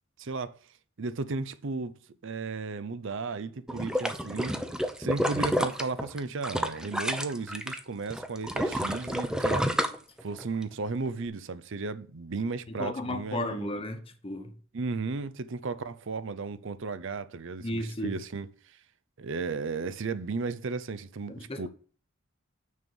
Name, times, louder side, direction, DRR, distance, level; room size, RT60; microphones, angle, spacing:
voice 1, 0.2-0.5 1.0-2.0 2.2-4.6 5.0-9.7 10.2-13.7 14.7-18.5 19.2-21.7, right 4 dB, 65° right, 0.6 m, -34 dB
sound 1, 3.7-7.8 8.1-10.6 11.1-11.2, equal, 5° right, 0.7 m, -29 dB
voice 2, 12.7-14.6 17.6-18.2 21.3-21.7, left 1 dB, 30° left, 1.0 m, -34 dB
6.4 x 5.4 x 7.0 m
head